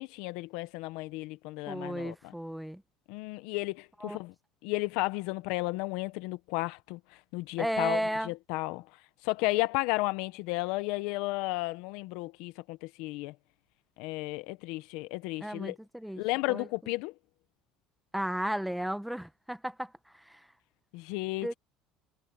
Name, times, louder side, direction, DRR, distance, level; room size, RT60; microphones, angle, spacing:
voice 1, 0.0-2.3 3.1-4.3 4.6-7.0 7.3-8.9 9.2-13.3 14.0-15.8 16.2-17.1 20.9-21.5, left 21 dB, 75° left, 1.0 m, -33 dB
voice 2, 1.7-2.8 4.0-4.2 7.6-8.3 15.4-16.2 16.5-16.7 18.1-20.5 21.4-21.5, equal, ahead, 1.1 m, -34 dB
supercardioid pair, 115°, 0 cm